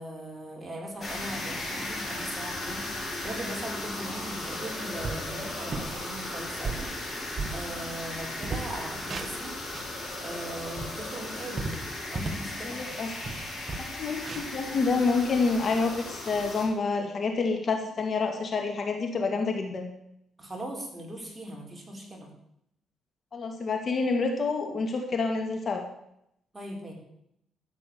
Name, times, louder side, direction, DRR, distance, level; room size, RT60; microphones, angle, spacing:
voice 1, 0.0-7.1 7.5-9.6 10.2-11.8 12.1-12.8 20.4-22.3 26.5-26.9, right 1 dB, 15° right, 0 dB, 4.7 m, -39 dB
sound 1, 1.0-16.7, left 1 dB, 30° left, 7.3 m, -36 dB
sound 2, 2.3-2.4 2.8-3.6 4.0-4.2 4.7-4.8 5.0-5.3 5.7-6.0 6.4-8.1 8.4-10.0 10.4-12.5 12.9-13.0 13.2-15.4, right 3 dB, 40° right, 1.8 m, -36 dB
voice 2, 12.6-13.3 14.0-19.8 23.3-25.8, left 4 dB, 45° left, 4 dB, 2.2 m, -28 dB
13.5 x 9.1 x 6.9 m, 0.75 s
cardioid pair, 90°, 0 cm